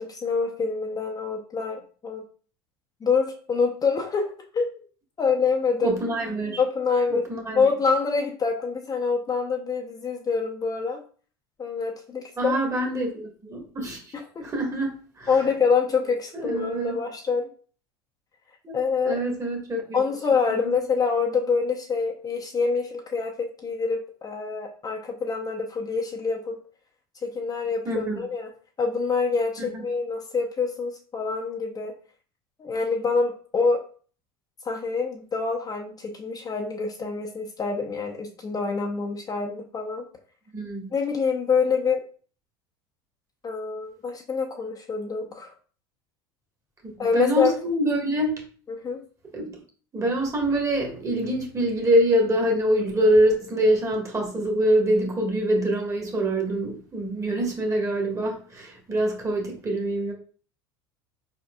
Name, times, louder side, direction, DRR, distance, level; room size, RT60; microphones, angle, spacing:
voice 1, 0.0-2.2 3.0-4.7 5.2-6.0 6.6-7.2 7.6-11.0 11.6-12.5 14.1-14.4 15.3-17.5 18.7-19.2 19.9-26.6 27.2-28.5 28.8-31.9 32.6-33.8 34.6-40.0 40.9-42.0 43.4-45.5 47.0-47.5 48.7-49.0, left 5 dB, 30° left, 1 dB, 0.8 m, -26 dB
voice 2, 5.8-6.6 7.1-7.7 12.4-14.1 14.4-15.3 16.3-17.0 18.6-18.7 19.0-20.0 20.5-20.7 27.8-28.2 29.6-29.8 40.5-40.9 46.8-48.4 49.3-49.6 49.9-60.1, right 1 dB, 25° right, 1 dB, 1.6 m, -25 dB
4.5 x 4.4 x 2.4 m, 0.41 s
hypercardioid pair, 75°, 13 cm